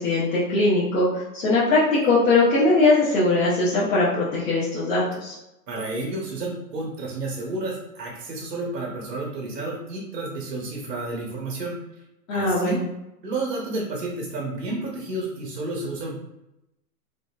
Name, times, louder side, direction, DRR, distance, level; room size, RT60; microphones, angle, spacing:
voice 1, 0.0-5.3 12.3-12.8, left 2 dB, 55° left, -8 dB, 1.0 m, -21 dB
voice 2, 5.7-11.8 12.3-12.8 13.2-16.3, right 2 dB, 75° right, -2 dB, 0.9 m, -31 dB
2.8 x 2.7 x 2.2 m, 0.90 s
hypercardioid pair, 150°, 49 cm